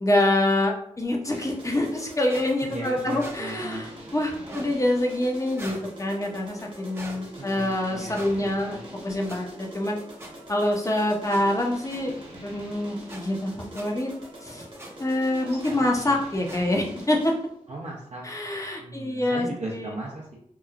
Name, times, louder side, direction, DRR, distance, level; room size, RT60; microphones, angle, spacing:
voice 1, 0.0-10.0 10.5-12.1 12.4-14.1 14.4-14.7 15.0-17.3 18.2-19.5 19.7-19.9, left 1 dB, 25° left, 0 dB, 0.6 m, -26 dB
sound 1, 1.3-17.5, right 1 dB, 40° right, 1.0 m, -44 dB
sound 2, 2.3-2.5 3.2-3.4 4.4-4.7 5.5-5.8 6.9-7.2 8.1-8.3 9.3-9.4 10.2-10.3 11.3-11.4 11.9-12.0 13.1-13.2 13.7-13.8 14.8-14.9 15.6-15.7 16.4-16.6, right 1 dB, 20° right, 0.6 m, -41 dB
voice 2, 2.6-3.9 7.4-8.8 15.0-15.1 15.3-16.2 17.7-18.2 18.8-20.4, right 2 dB, 60° right, -4 dB, 0.6 m, -38 dB
2.9 x 2.3 x 2.4 m, 0.68 s
cardioid pair, 45°, 13 cm